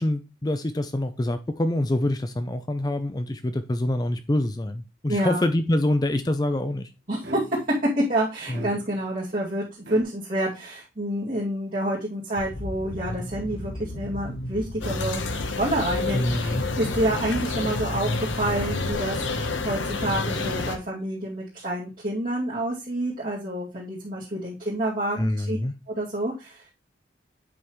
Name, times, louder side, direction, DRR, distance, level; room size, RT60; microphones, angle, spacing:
voice 1, 0.0-6.9 8.5-8.7 16.1-16.6 25.2-25.7, left 1 dB, 20° left, 0.5 m, -25 dB
voice 2, 5.1-5.4 7.1-7.4 8.0-9.6 9.9-15.3 15.6-25.6 25.9-26.6, right 1 dB, 50° right, 2.4 m, -28 dB
sound 1, 7.2-7.8 8.5-9.2 9.9-10.0, right 2 dB, 65° right, 1.7 m, -39 dB
sound 2, 12.4-18.9, left 1 dB, 50° left, 1.0 m, -34 dB
sound 3, 14.8-20.8, left 3 dB, 90° left, 1.1 m, -29 dB
8.7 x 5.6 x 3.1 m
head